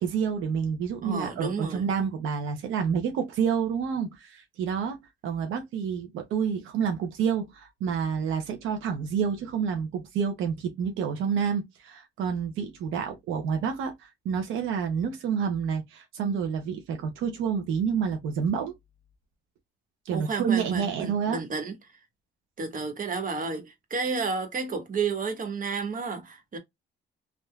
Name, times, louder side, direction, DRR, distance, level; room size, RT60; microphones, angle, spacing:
voice 1, 0.0-18.7 20.1-21.4, right 7 dB, 85° right, 0.8 m, -29 dB
voice 2, 1.0-1.9 20.1-21.7 22.6-26.6, right 4 dB, 45° right, 1.3 m, -31 dB
3.5 x 2.5 x 2.2 m
cardioid pair, 90°, 20 cm